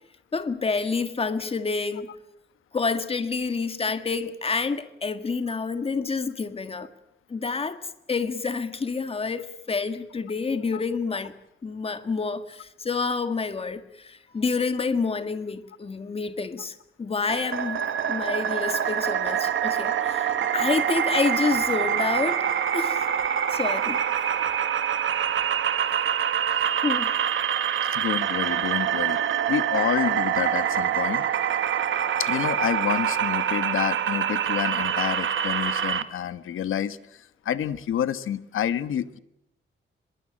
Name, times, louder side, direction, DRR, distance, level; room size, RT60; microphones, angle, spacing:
voice 1, 0.3-2.1 2.7-6.9 7.3-7.8 8.1-11.3 11.6-22.4 22.7-23.1 23.5-24.0 25.9-26.0 26.8-27.1, left 4 dB, 30° left, 10 dB, 1.8 m, -28 dB
sound 1, 17.3-36.0, right 9 dB, 75° right, 1.8 m, -25 dB
voice 2, 27.9-31.2 32.2-39.2, left 10 dB, 80° left, 13 dB, 1.3 m, -29 dB
24.0 x 22.0 x 8.8 m, 0.80 s
wide cardioid pair, 155°, 21 cm